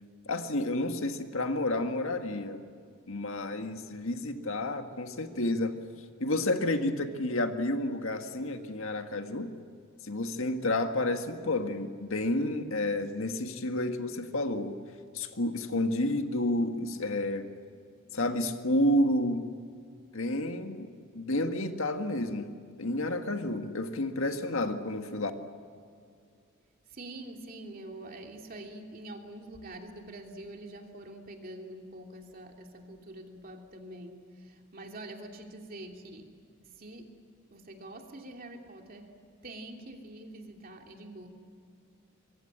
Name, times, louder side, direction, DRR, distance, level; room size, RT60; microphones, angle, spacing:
voice 1, 0.2-2.6 3.1-5.7 6.2-9.5 10.0-14.8 15.1-17.5 18.1-19.5 20.1-22.5 22.8-25.3, left 1 dB, 70° left, 6 dB, 1.7 m, -30 dB
voice 2, 26.9-36.4 36.8-37.2 37.5-39.1 39.4-41.3, right 1 dB, 40° right, 2 dB, 2.9 m, -45 dB
25.0 x 23.0 x 8.9 m, 2.2 s
head